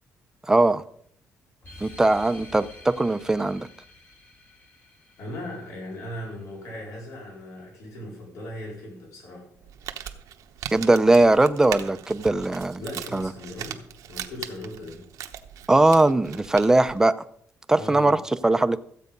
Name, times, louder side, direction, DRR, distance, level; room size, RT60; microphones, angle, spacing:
voice 1, 0.5-0.8 1.8-3.7 10.7-12.8 13.1-13.3 15.7-17.1 17.7-18.2 18.4-18.8, right 2 dB, 10° right, 0.5 m, -20 dB
sound 1, 1.6-6.6, left 2 dB, 35° left, 1.9 m, -49 dB
voice 2, 5.2-9.5 12.8-15.0 17.8-18.2, left 1 dB, 75° left, 4.4 m, -38 dB
Crumpling crinkling, 9.6-17.0, right 10 dB, 85° right, 1.0 m, -39 dB
14.5 x 8.2 x 5.3 m
cardioid pair, 150°, 6 cm